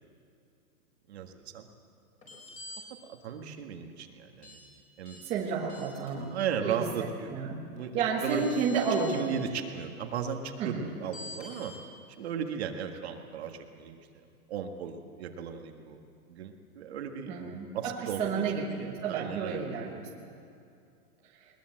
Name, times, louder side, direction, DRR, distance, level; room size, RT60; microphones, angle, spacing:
voice 1, 1.1-1.7 3.1-4.6 5.0-5.2 6.3-7.4 7.7-8.4 9.1-11.7 12.2-16.0 16.3-17.4 17.7-18.4 19.0-19.6, right 7 dB, 45° right, 5 dB, 1.8 m, -36 dB
sound 1, 2.2-2.8 4.4-4.6 5.0-5.2 5.7-6.1 7.8-7.9 8.2-9.2 11.1-11.7, left 3 dB, 15° left, 4.7 m, -45 dB
voice 2, 5.2-7.6 7.9-9.3 10.6-10.9 17.3-20.3, right 5 dB, 15° right, -2 dB, 1.2 m, -32 dB
21.0 x 20.5 x 7.7 m, 2.5 s
hypercardioid pair, 175°, 44 cm